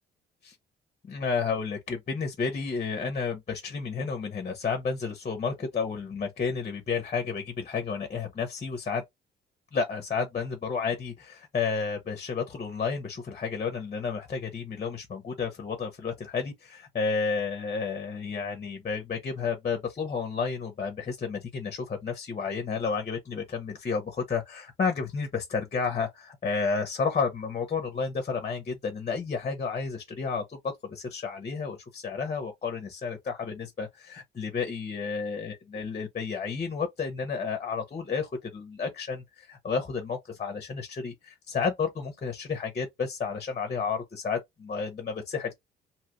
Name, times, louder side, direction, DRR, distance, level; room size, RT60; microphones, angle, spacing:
voice 1, 1.1-9.0 9.7-45.6, left 5 dB, 35° left, 0.8 m, -31 dB
2.8 x 2.4 x 2.9 m
cardioid pair, 100°, 20 cm